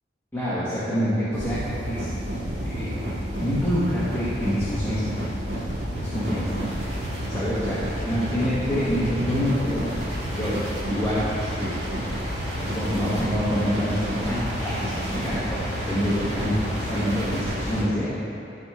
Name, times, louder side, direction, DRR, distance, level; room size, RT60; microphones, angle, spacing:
voice 1, 0.3-1.6 1.9-2.1 2.6-3.0 3.4-5.1 6.0-6.7 7.3-9.8 10.3-11.8 12.6-18.1, equal, 15° left, -11 dB, 1.3 m, -26 dB
sound 1, 1.3-17.8, equal, 85° right, 1.8 m, -30 dB
12.5 x 4.4 x 3.6 m, 2.8 s
head